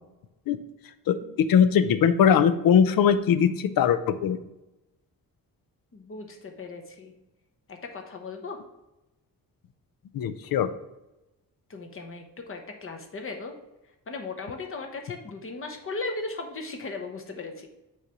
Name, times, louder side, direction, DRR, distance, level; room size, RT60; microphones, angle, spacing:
voice 1, 1.1-4.4 10.1-10.7, left 8 dB, 75° left, 13 dB, 0.6 m, -21 dB
voice 2, 5.9-7.1 7.7-8.6 11.7-13.5 14.1-17.7, left 3 dB, 35° left, 4 dB, 1.0 m, -37 dB
6.5 x 3.2 x 5.9 m, 0.96 s
wide cardioid pair, 165°, 35 cm